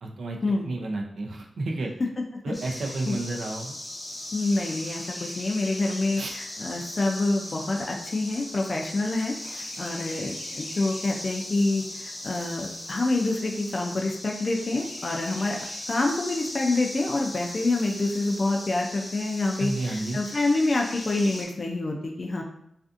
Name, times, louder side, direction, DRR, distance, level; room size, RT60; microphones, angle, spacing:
voice 1, 0.0-0.4 0.7-1.9 2.4-3.8 6.2-6.3 19.6-20.2, right 2 dB, 80° right, 0 dB, 0.4 m, -31 dB
sound 1, 2.5-21.4, left 1 dB, 25° left, 0.7 m, -38 dB
voice 2, 4.3-15.6 15.9-22.4, left 2 dB, 45° left, 1 dB, 0.3 m, -27 dB
2.5 x 2.5 x 2.4 m, 0.74 s
wide cardioid pair, 80°, 0 cm